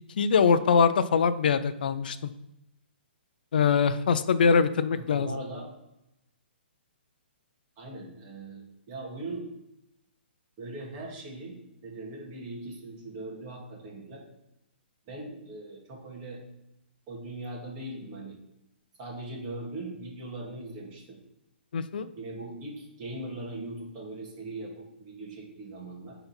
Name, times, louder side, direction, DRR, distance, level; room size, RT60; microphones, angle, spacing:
voice 1, 0.2-2.3 3.5-5.3 21.7-22.1, left 6 dB, 50° left, 11 dB, 0.5 m, -23 dB
voice 2, 4.9-5.7 7.8-9.5 10.6-11.6 11.8-14.2 15.1-16.4 17.1-18.4 19.0-21.2 22.1-26.2, right 2 dB, 20° right, -3 dB, 2.1 m, -40 dB
9.6 x 4.0 x 4.4 m, 0.89 s
hypercardioid pair, 175°, 6 cm